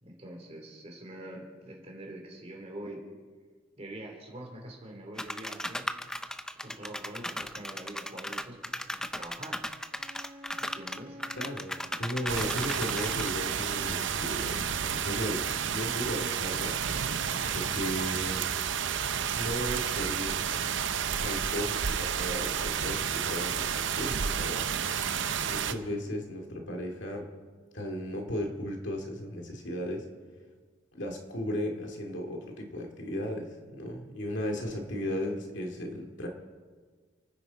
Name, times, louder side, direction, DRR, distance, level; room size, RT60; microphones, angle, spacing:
voice 1, 0.0-3.0 3.8-5.9 6.6-9.6 10.6-11.2 25.0-25.4 34.5-34.7, right 1 dB, 35° right, 0 dB, 3.1 m, -45 dB
sound 1, 5.2-13.3, left 1 dB, 5° left, 0.4 m, -36 dB
Wind instrument woodwind instrument, 9.9-14.3, equal, 50° right, 5.9 m, -52 dB
voice 2, 11.4-16.8 17.5-18.5 19.3-20.7 21.2-24.7 25.4-27.3 27.7-30.1 30.9-36.3, equal, 65° left, 2 dB, 2.3 m, -35 dB
sound 2, 12.3-25.7, right 7 dB, 70° right, 0.7 m, -31 dB
29.0 x 9.8 x 4.0 m, 1.5 s
head